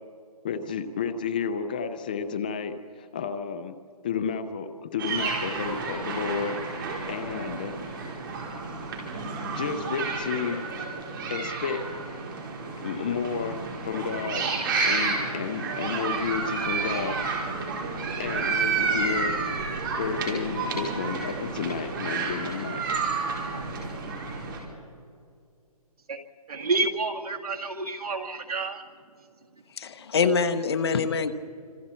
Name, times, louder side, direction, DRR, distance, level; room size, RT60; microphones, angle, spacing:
voice 1, 0.4-3.8 4.0-7.7 9.6-10.6 11.3-11.8 12.8-14.5 14.8-17.2 18.2-19.3 20.0-22.8, left 6 dB, 15° left, 9 dB, 0.5 m, -31 dB
sound 1, 5.0-24.6, right 4 dB, 35° right, 4.3 m, -30 dB
voice 2, 26.5-28.8, right 3 dB, 70° right, 3 dB, 2.3 m, -29 dB
voice 3, 29.8-31.3, left 5 dB, 40° left, 10 dB, 1.1 m, -24 dB
26.5 x 26.5 x 4.4 m, 2.3 s
hypercardioid pair, 170°, 20 cm